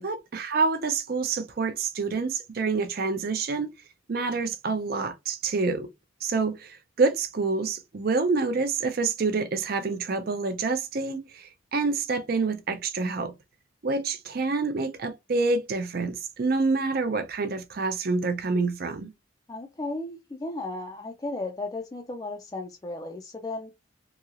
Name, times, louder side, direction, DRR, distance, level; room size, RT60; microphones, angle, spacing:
voice 1, 0.0-3.7 4.1-5.9 6.2-13.3 13.8-19.1, right 4 dB, 50° right, 0.4 m, -27 dB
voice 2, 19.5-23.7, left 2 dB, 20° left, 0.3 m, -35 dB
2.9 x 2.8 x 2.4 m
head